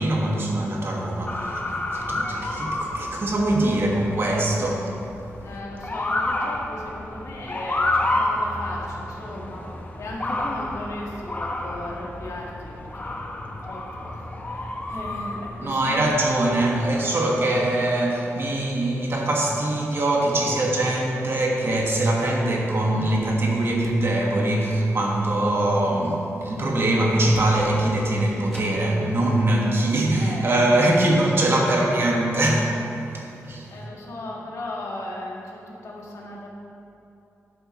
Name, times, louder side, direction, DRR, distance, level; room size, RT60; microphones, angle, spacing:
voice 1, 0.0-5.0 15.6-32.8 33.1-33.7, right 1 dB, 50° right, -1 dB, 1.5 m, -22 dB
Motor vehicle (road) / Siren, 1.3-16.8, left 1 dB, 30° left, 1.0 m, -30 dB
voice 2, 5.4-9.6 10.0-13.3 13.6-16.1 17.5-17.8 30.1-30.4 33.7-36.5, left 1 dB, 75° left, -4 dB, 1.8 m, -37 dB
sound 1, 23.8-24.1 24.5-25.2 26.7-26.8 27.3-27.9 28.4-29.0, equal, 5° left, 1.4 m, -43 dB
12.0 x 8.0 x 3.2 m, 2.8 s
wide cardioid pair, 100°, 5 cm